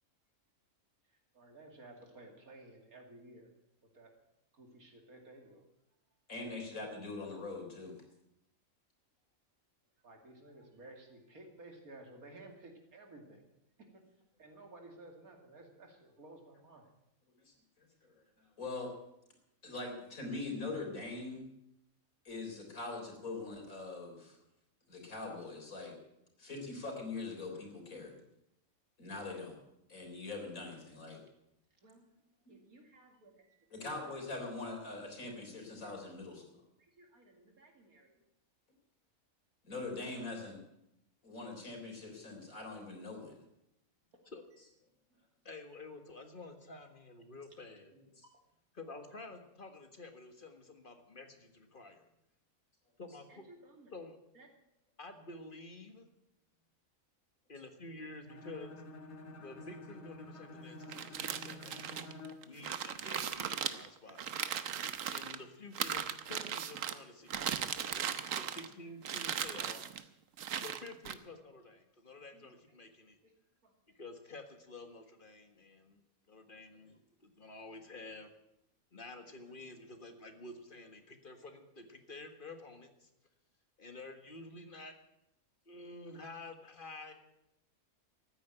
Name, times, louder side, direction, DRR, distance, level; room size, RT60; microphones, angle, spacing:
voice 1, 1.3-3.5 3.9-4.1 4.5-5.6 10.0-13.4 14.4-16.9 31.8-32.0 32.5-33.9 35.2-35.3 36.8-38.2 44.2-44.3 48.2-48.3 53.3-53.9 54.3-54.5 68.1-68.3 68.6-68.8 72.3-72.5 73.2-73.3 73.6-73.7, right 2 dB, 85° right, 3 dB, 3.1 m, -55 dB
voice 2, 6.3-8.0 17.5-18.1 18.4-18.9 19.6-21.5 22.2-24.4 24.9-26.0 26.4-28.2 29.0-29.6 29.9-31.2 33.7-36.4 39.6-40.6 41.2-43.4, left 3 dB, 75° left, 2 dB, 4.2 m, -42 dB
voice 3, 45.4-47.9 48.7-52.1 53.0-53.4 53.9-54.2 55.0-56.1 57.5-58.8 59.4-62.0 62.4-64.4 65.1-67.6 67.9-69.9 70.6-73.2 73.9-76.0 76.3-78.3 78.9-83.1 83.8-84.9 85.6-87.1, left 2 dB, 40° left, 6 dB, 1.8 m, -50 dB
Bowed string instrument, 58.3-62.5, left 2 dB, 55° left, 1.9 m, -49 dB
sound 1, 60.8-65.4 65.7-67.0 67.3-68.7 69.0-70.0 70.4-71.1, right 8 dB, 70° right, 1.2 m, -37 dB
14.0 x 9.5 x 9.2 m, 0.85 s
omnidirectional pair, 1.5 m